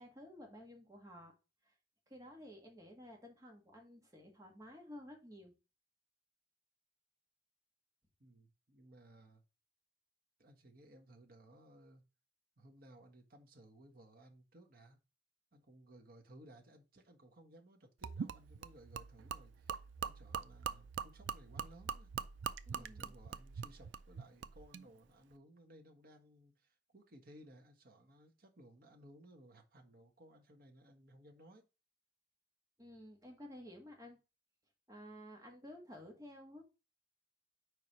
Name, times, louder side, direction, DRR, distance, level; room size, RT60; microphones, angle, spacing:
voice 1, 0.0-1.3 1.6-1.7 2.1-5.5 22.6-23.1 32.8-34.2 34.9-36.6, left 1 dB, 20° right, 1.7 m, -53 dB
voice 2, 8.2-9.4 10.4-12.0 12.6-15.0 15.5-22.1 22.7-31.7, right 1 dB, 55° right, 1.3 m, -60 dB
Gurgling / Liquid, 18.0-24.8, right 6 dB, 85° right, 0.4 m, -44 dB
4.7 x 4.7 x 5.5 m
head